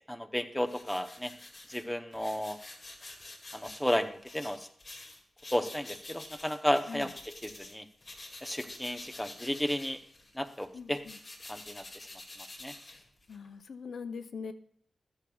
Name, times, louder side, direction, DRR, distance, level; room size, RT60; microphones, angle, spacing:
voice 1, 0.1-1.3 1.7-2.6 3.5-4.7 5.5-7.8 8.4-10.0 10.3-11.0 11.5-11.8 12.6-12.7, equal, 5° left, 5 dB, 0.7 m, -33 dB
sound 1, 0.7-7.7 8.0-13.5, left 2 dB, 35° left, 2.2 m, -48 dB
voice 2, 10.7-11.2 13.3-14.5, left 5 dB, 70° left, 9 dB, 0.6 m, -41 dB
14.0 x 13.5 x 2.3 m, 0.63 s
wide cardioid pair, 160°, 0 cm